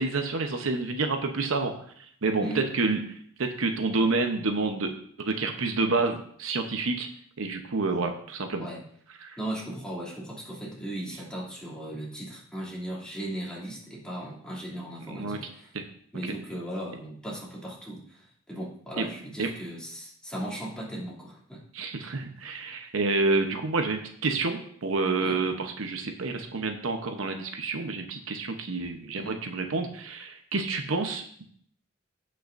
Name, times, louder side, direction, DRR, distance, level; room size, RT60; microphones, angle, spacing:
voice 1, 0.0-1.7 2.2-3.0 3.4-4.9 5.2-7.1 7.4-8.7 9.2-9.4 15.1-15.4 15.7-15.8 16.2-16.3 19.0-19.1 19.4-19.5 21.7-31.4, right 3 dB, 80° right, 5 dB, 0.9 m, -28 dB
voice 2, 9.4-15.7 16.1-21.9 25.2-25.4 29.1-29.4, right 1 dB, 5° left, -5 dB, 2.7 m, -37 dB
16.5 x 5.7 x 2.6 m, 0.62 s
head